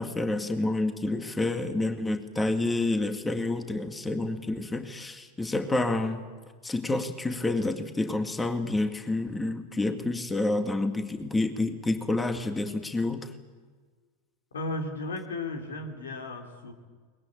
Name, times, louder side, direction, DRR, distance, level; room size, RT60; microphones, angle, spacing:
voice 1, 0.0-6.2 6.6-13.3, left 2 dB, 15° left, 6 dB, 2.1 m, -28 dB
voice 2, 14.5-16.7, left 2 dB, 85° left, 4 dB, 3.4 m, -35 dB
23.0 x 21.0 x 9.0 m, 1.5 s
hypercardioid pair, 90°, 0 cm